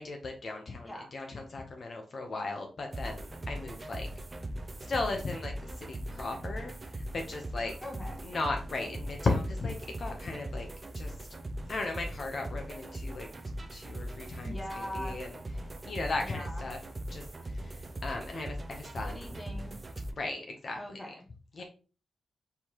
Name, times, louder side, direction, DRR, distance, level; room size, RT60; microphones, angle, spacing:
voice 1, 0.0-4.1 4.9-7.7 8.2-10.7 10.9-11.1 11.7-13.3 13.7-15.3 15.8-16.8 17.1-17.2 17.6-19.2 20.2-20.8 21.6-21.7, left 3 dB, 50° left, 3 dB, 0.7 m, -36 dB
sound 1, 2.9-20.1, right 1 dB, 30° right, 0.4 m, -40 dB
voice 2, 7.8-8.2 14.4-15.2 16.2-16.7 19.0-19.7 20.7-21.3 21.6-21.7, left 1 dB, 20° left, 2 dB, 1.1 m, -41 dB
4.6 x 3.4 x 2.9 m, 0.36 s
cardioid pair, 100°, 0 cm